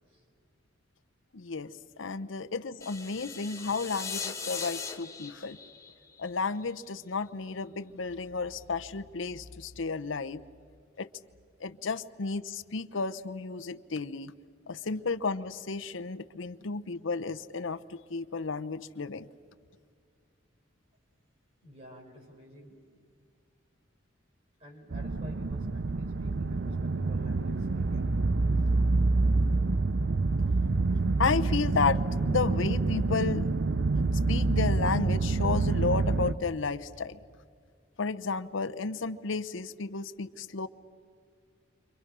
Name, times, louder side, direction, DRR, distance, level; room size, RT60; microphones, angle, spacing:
voice 1, 1.3-5.6 6.2-10.4 11.0-11.1 11.6-14.3 14.7-19.3 31.2-33.5 34.3-37.2 38.0-40.7, left 4 dB, 70° left, 12 dB, 0.8 m, -32 dB
sound 1, 2.8-6.9, left 5 dB, 15° left, 1.4 m, -39 dB
voice 2, 21.6-22.9 24.6-28.1 28.5-28.7, equal, 35° right, 0 dB, 6.1 m, -51 dB
sound 2, 24.9-36.3, right 3 dB, 60° right, 0.6 m, -27 dB
29.5 x 25.5 x 6.2 m, 2.1 s
head